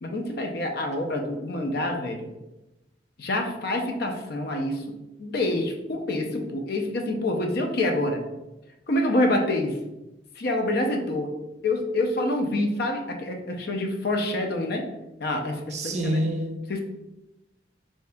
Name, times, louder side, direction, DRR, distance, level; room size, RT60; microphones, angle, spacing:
voice 1, 0.0-2.3 3.2-4.8 5.2-8.2 8.9-9.8 10.4-11.4 11.6-14.9 15.2-16.2 16.7-16.8, left 1 dB, 60° left, 0.5 m, -27 dB
voice 2, 15.7-16.8, equal, 40° right, 0.5 m, -27 dB
3.4 x 2.7 x 3.3 m
head